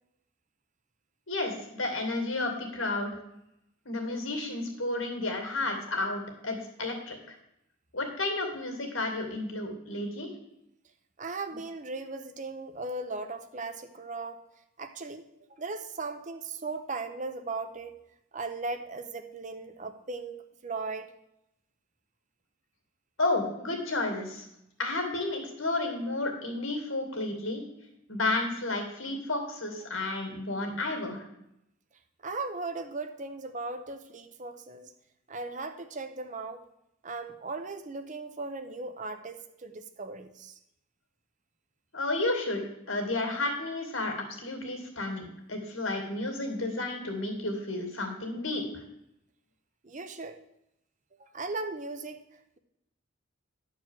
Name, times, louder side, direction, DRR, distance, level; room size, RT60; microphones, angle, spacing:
voice 1, 1.3-3.1 3.8-7.3 7.9-10.3 23.2-24.4 24.8-27.6 28.1-31.3 41.9-42.6 42.9-48.8, left 2 dB, 75° left, 4 dB, 2.5 m, -32 dB
voice 2, 11.2-14.4 14.8-18.0 18.3-21.2 32.2-34.9 35.3-36.6 37.0-40.6 49.8-50.4 51.2-52.6, right 3 dB, 35° right, 8 dB, 0.7 m, -37 dB
11.0 x 4.8 x 7.5 m, 0.81 s
head